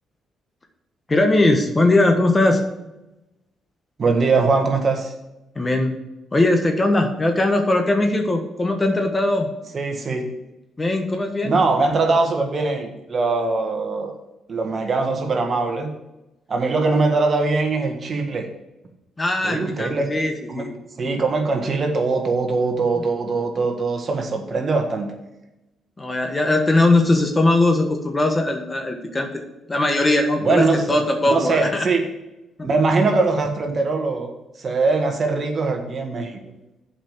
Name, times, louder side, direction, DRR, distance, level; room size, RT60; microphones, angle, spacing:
voice 1, 1.1-2.6 5.5-5.9 6.3-9.5 10.8-11.6 19.2-20.7 26.0-29.3 29.7-31.9 32.6-32.7, left 2 dB, 25° left, 5 dB, 1.4 m, -20 dB
voice 2, 4.0-5.1 9.7-10.4 11.4-14.1 14.5-16.0 16.5-18.5 19.4-20.7 21.0-25.1 30.4-31.0 31.3-32.0 32.6-34.3 34.6-36.4, right 3 dB, 45° right, 4 dB, 1.5 m, -22 dB
7.3 x 5.1 x 7.2 m, 0.95 s
cardioid pair, 90°, 0 cm